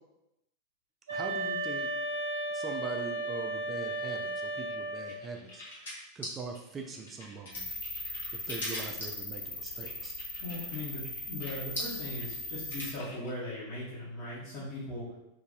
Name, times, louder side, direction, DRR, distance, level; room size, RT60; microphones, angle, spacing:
voice 1, 1.1-1.9 2.5-5.6 6.1-7.7 8.3-10.1, right 4 dB, 20° right, 2 dB, 0.4 m, -42 dB
sound 1, 1.1-5.2, right 2 dB, 65° right, 0.6 m, -34 dB
sound 2, 4.6-13.3, left 1 dB, 70° left, 1.1 m, -42 dB
sound 3, 7.5-12.9, left 2 dB, 20° left, 1.0 m, -39 dB
voice 2, 10.4-15.2, left 1 dB, 45° left, -9 dB, 1.2 m, -39 dB
2.9 x 2.5 x 3.9 m, 0.90 s
figure-of-eight pair, 90°, 0 cm